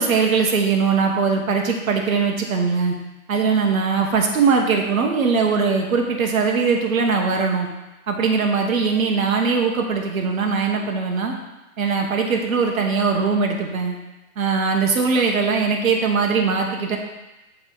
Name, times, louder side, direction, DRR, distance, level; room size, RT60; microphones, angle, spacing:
voice 1, 0.0-2.9 3.3-7.7 8.1-11.3 11.8-14.0 14.4-17.0, right 5 dB, 70° right, 2 dB, 1.3 m, -20 dB
7.9 x 3.5 x 4.0 m, 1.0 s
hypercardioid pair, 135°, 43 cm